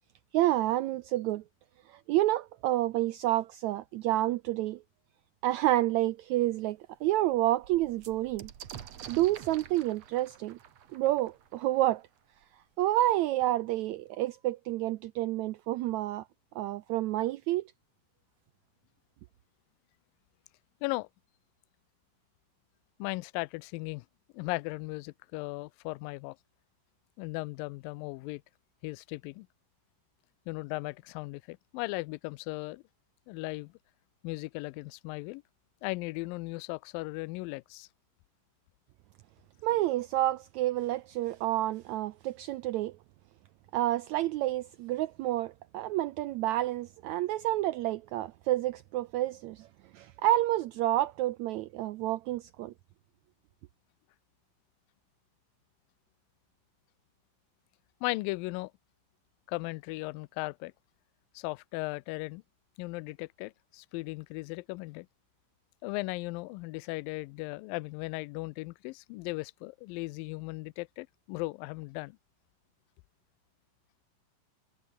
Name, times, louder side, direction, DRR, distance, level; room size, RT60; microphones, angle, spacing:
voice 1, 0.3-1.4 1.9-4.8 5.4-8.5 9.1-10.6 10.9-12.0 12.8-16.2 16.5-17.6 39.6-43.0 43.7-49.7 49.9-52.7, right 15 dB, 85° right, 1.6 m, -29 dB
sound 1, 6.0-6.1 6.5-6.6 6.9-12.4 13.4-13.5 13.8-14.4, right 9 dB, 55° right, 2.5 m, -49 dB
voice 2, 23.0-24.1 24.3-26.4 27.2-28.4 28.8-29.5 30.5-32.8 33.3-33.7 34.2-35.4 35.8-37.9 58.0-58.7 59.5-60.7 61.4-62.4 62.8-65.1 65.8-72.2, left 23 dB, 85° left, 2.3 m, -37 dB
omnidirectional pair, 4.0 m